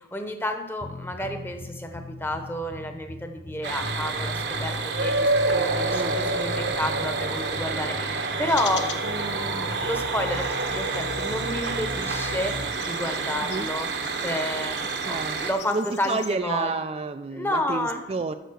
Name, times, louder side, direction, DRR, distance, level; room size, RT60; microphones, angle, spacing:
voice 1, 0.0-12.6 12.8-13.9 14.2-14.8 15.0-16.7 17.3-18.1, left 1 dB, 10° left, 5 dB, 0.9 m, -30 dB
sound 1, 0.8-12.8, left 2 dB, 30° left, 0.5 m, -38 dB
sound 2, 3.6-15.5, right 3 dB, 75° right, 1.0 m, -28 dB
voice 2, 5.9-6.2 13.4-13.7 15.1-15.4 15.7-18.3, right 3 dB, 35° right, 8 dB, 0.3 m, -30 dB
sound 3, 8.5-16.3, left 8 dB, 75° left, 0.8 m, -43 dB
9.2 x 6.6 x 6.4 m, 1.0 s
head